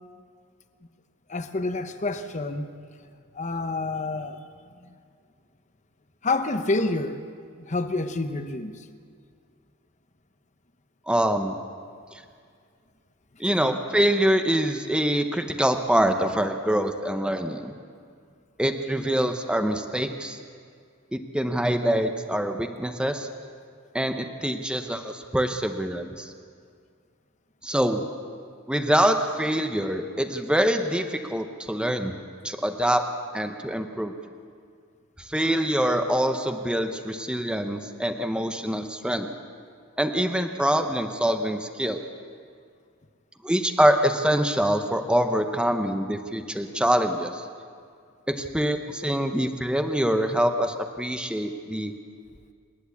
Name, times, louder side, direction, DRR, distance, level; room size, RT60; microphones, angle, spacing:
voice 1, 1.3-2.7 3.3-4.4 4.8-4.9 6.2-7.2 7.6-8.9, left 2 dB, 35° left, 9 dB, 0.9 m, -28 dB
voice 2, 11.1-11.5 12.1-12.2 13.4-17.7 18.6-20.4 21.1-23.3 23.9-26.3 27.6-28.0 28.7-32.2 32.4-33.0 33.3-34.1 35.2-39.3 40.0-42.0 43.4-47.5 48.3-51.9, equal, 5° right, 6 dB, 0.8 m, -25 dB
28.0 x 11.0 x 8.4 m, 2.2 s
head